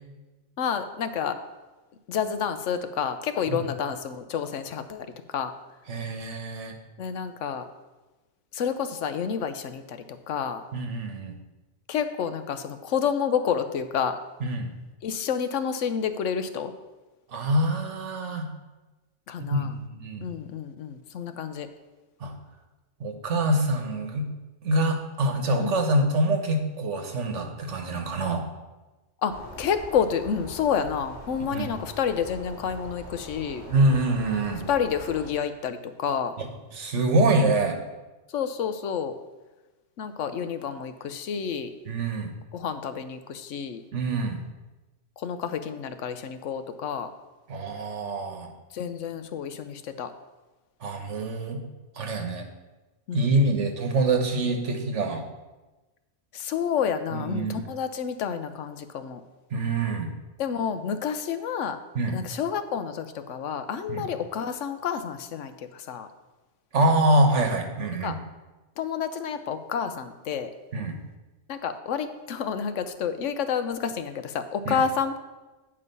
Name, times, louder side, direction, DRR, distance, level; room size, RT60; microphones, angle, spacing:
voice 1, 0.6-1.4 2.1-5.1 5.3-5.5 7.0-7.6 8.5-10.6 11.9-14.2 15.0-16.7 19.3-19.7 20.2-21.7 25.6-25.8 29.2-33.6 34.7-36.3 38.3-39.1 40.0-41.7 42.5-43.8 45.2-47.1 48.7-50.1 53.1-53.2 56.3-59.2 60.4-61.8 62.1-66.1 68.0-68.1 68.8-70.5 71.5-75.2, left 7 dB, 90° left, 10 dB, 1.1 m, -29 dB
voice 2, 5.9-6.7 10.7-11.3 14.4-14.7 17.3-18.5 19.4-20.2 22.2-22.3 23.0-24.3 24.6-28.5 31.5-31.7 33.7-34.6 36.4-37.8 41.8-42.3 43.9-44.4 47.5-48.5 50.8-51.6 52.0-52.5 53.1-55.2 57.1-57.6 59.5-60.1 61.9-62.2 63.9-64.1 66.7-68.2 70.7-71.0 74.6-74.8, right 2 dB, 75° right, 5 dB, 1.4 m, -25 dB
sound 1, 29.3-35.3, equal, 30° right, 3.2 m, -43 dB
9.6 x 5.4 x 5.4 m, 1.2 s
omnidirectional pair, 1.2 m